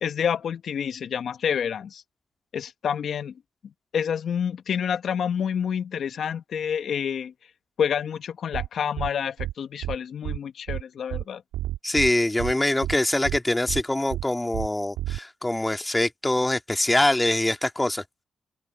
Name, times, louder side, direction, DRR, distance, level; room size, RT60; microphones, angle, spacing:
voice 1, 0.0-2.0 2.5-3.3 3.9-7.3 7.8-11.4, left 8 dB, 65° left, 1.2 m, -28 dB
sound 1, 8.5-8.7 9.0-9.1 9.4-9.5 9.8-10.0 10.2-10.4 10.7-10.8 11.1-11.2 11.5-12.1 12.4-12.5 12.8-13.0 13.2-13.4 13.7-13.8 14.1-14.2 14.5-14.7 15.0-15.2, right 13 dB, 85° right, 1.7 m, -30 dB
voice 2, 11.8-18.0, left 1 dB, 15° left, 2.1 m, -24 dB
supercardioid pair, 55°, 0 cm